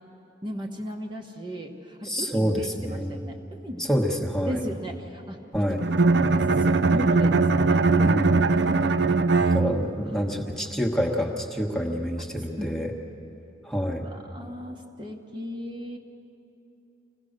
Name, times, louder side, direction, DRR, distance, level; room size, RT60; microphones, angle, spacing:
voice 1, 0.4-3.9 4.4-5.8 6.1-7.8 12.6-12.7 13.9-16.0, equal, 25° right, 0 dB, 1.1 m, -36 dB
voice 2, 2.0-3.2 3.9-4.6 5.5-5.8 8.0-8.6 9.5-12.9 13.6-14.0, equal, ahead, 0 dB, 1.2 m, -27 dB
Bowed string instrument, 5.8-10.1, right 3 dB, 60° right, 0.5 m, -21 dB
25.5 x 17.0 x 6.6 m, 2.8 s
head